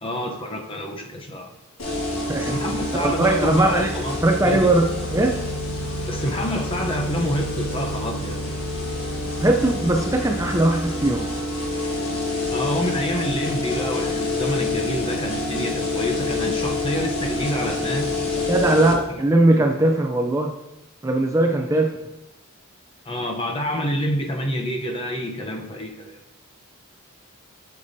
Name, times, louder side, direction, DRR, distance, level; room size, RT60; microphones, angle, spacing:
voice 1, 0.0-1.5 2.3-4.7 6.1-8.4 12.5-18.2 18.9-19.0 19.5-19.6 23.1-26.2, equal, 25° left, 2 dB, 0.7 m, -27 dB
sound 1, 1.8-18.9, left 2 dB, 65° left, 1.5 m, -27 dB
voice 2, 3.0-3.9 4.2-5.3 9.4-11.3 18.4-20.5 21.0-21.9, right 2 dB, 15° right, 2 dB, 0.4 m, -19 dB
8.4 x 6.7 x 2.7 m, 0.91 s
head